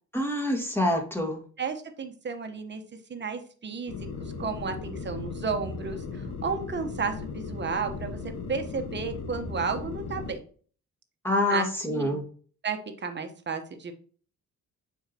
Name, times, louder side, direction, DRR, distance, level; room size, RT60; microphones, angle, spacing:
voice 1, 0.1-1.4 11.2-12.2, left 1 dB, 5° left, 1 dB, 1.9 m, -26 dB
voice 2, 1.6-2.8 3.1-3.9 4.2-10.4 11.5-12.2 12.6-13.9, right 5 dB, 35° right, 7 dB, 1.1 m, -33 dB
sound 1, 3.9-10.3, left 4 dB, 70° left, 1.4 m, -37 dB
8.0 x 4.6 x 2.9 m, 0.43 s
cardioid pair, 90°, 30 cm